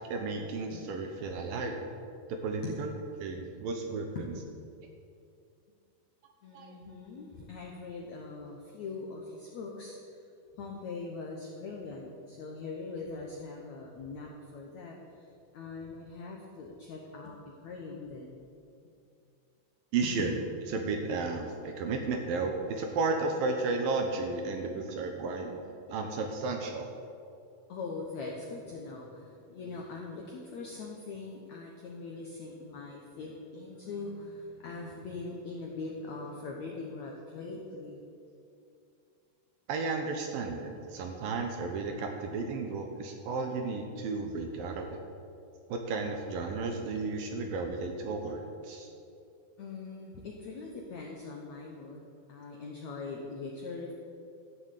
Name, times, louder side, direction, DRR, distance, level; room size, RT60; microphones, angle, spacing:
voice 1, 0.1-1.8 2.4-2.9 3.2-4.1 6.5-6.8 19.9-20.3 20.7-26.9 39.7-45.0 45.7-48.9, right 3 dB, 70° right, 4 dB, 2.4 m, -33 dB
voice 2, 6.4-10.3 10.5-18.4 20.0-20.3 27.7-38.0 49.6-53.9, left 3 dB, 75° left, 0 dB, 1.6 m, -42 dB
13.5 x 7.1 x 8.2 m, 2.5 s
omnidirectional pair, 4.8 m